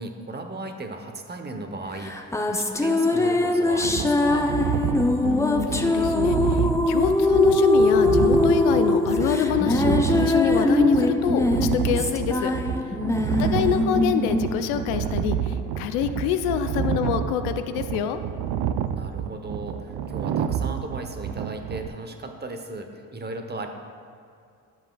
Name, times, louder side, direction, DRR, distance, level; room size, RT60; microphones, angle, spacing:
voice 1, 0.0-4.5 13.1-13.7 18.9-23.7, right 2 dB, 25° right, 5 dB, 0.9 m, -36 dB
sound 1, 2.0-15.7, left 2 dB, 5° left, 0.6 m, -22 dB
sound 2, 3.7-21.9, right 9 dB, 60° right, 0.5 m, -29 dB
voice 2, 5.1-12.5 13.4-18.2, left 9 dB, 80° left, 10 dB, 0.6 m, -26 dB
10.5 x 7.1 x 2.3 m, 2.4 s
hypercardioid pair, 55°, 43 cm